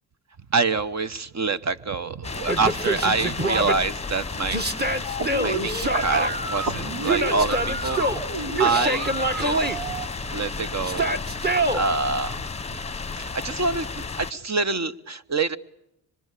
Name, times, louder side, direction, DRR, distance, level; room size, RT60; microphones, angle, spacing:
voice 1, 0.5-2.1 2.4-5.1 5.4-8.1 8.3-10.0 10.3-12.4 12.7-12.8 13.2-15.6, right 4 dB, 45° right, 1.3 m, -26 dB
sound 1, 2.2-14.3, left 4 dB, 15° left, 1.0 m, -33 dB
Yell, 2.5-3.8 4.5-6.3 7.0-8.2 8.5-9.8 10.8-11.8, right 2 dB, 25° right, 2.0 m, -25 dB
sound 2, 5.0-10.0, right 2 dB, 80° right, 4.5 m, -31 dB
25.5 x 23.5 x 8.3 m
cardioid pair, 70°, 38 cm